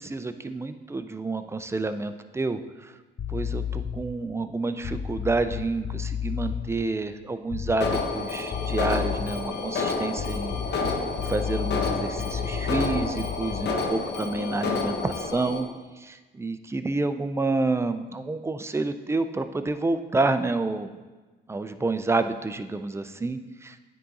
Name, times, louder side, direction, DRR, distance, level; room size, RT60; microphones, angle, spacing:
voice 1, 0.0-2.9 3.3-15.7 16.0-20.9 21.5-23.8, right 3 dB, 15° right, 9 dB, 0.4 m, -29 dB
sound 1, 3.2-4.1 4.8-6.7 7.5-8.2 8.5-9.5 10.1-13.8, left 8 dB, 35° left, 0.6 m, -32 dB
Alarm, 7.8-15.6, left 4 dB, 60° left, 0.9 m, -30 dB
9.3 x 3.8 x 4.0 m, 1.3 s
cardioid pair, 90°, 20 cm